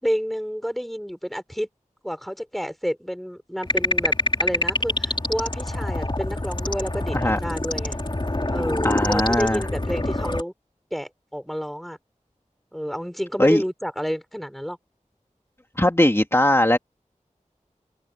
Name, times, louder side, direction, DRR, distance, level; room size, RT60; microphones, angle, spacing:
voice 1, 0.0-1.7 2.0-7.9 8.5-10.5 10.9-12.0 12.7-14.8, equal, ahead, 4.7 m, -29 dB
sound 1, 3.6-10.4, left 2 dB, 40° left, 3.1 m, -26 dB
voice 2, 8.8-9.7 13.4-13.6 15.8-16.8, left 1 dB, 20° left, 2.3 m, -19 dB
wide cardioid pair, 45°, 13 cm